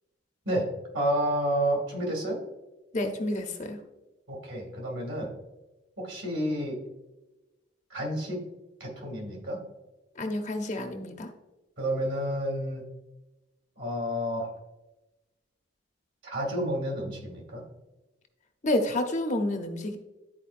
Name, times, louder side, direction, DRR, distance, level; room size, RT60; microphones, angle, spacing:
voice 1, 0.9-2.4 4.3-5.3 6.0-6.8 7.9-8.4 8.8-9.6 11.8-12.8 13.8-14.5 16.2-17.6, right 1 dB, 65° right, -1 dB, 2.5 m, -30 dB
voice 2, 2.9-3.8 10.2-11.3 18.6-20.0, left 1 dB, 40° left, 5 dB, 0.7 m, -29 dB
11.5 x 4.6 x 2.5 m, 1.0 s
head